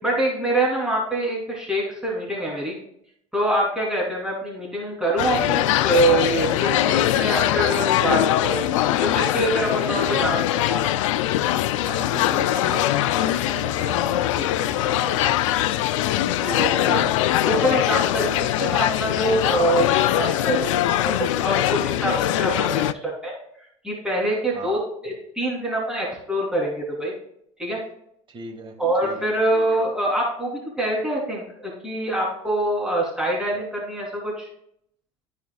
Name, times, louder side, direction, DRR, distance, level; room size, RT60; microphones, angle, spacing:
voice 1, 0.0-2.8 3.3-8.6 9.0-10.4 10.7-10.8 16.4-17.0 17.4-23.3 23.8-27.1 27.6-27.8 28.8-34.5, right 1 dB, 5° right, -4 dB, 3.4 m, -25 dB
sound 1, 5.2-22.9, left 13 dB, 80° left, 0.5 m, -22 dB
voice 2, 9.9-10.4 11.8-15.4 18.2-18.5 22.6-22.8 24.5-24.8 28.3-28.7 29.0-29.3, right 3 dB, 30° right, 1 dB, 2.5 m, -37 dB
14.5 x 5.0 x 2.3 m, 0.72 s
hypercardioid pair, 90°, 16 cm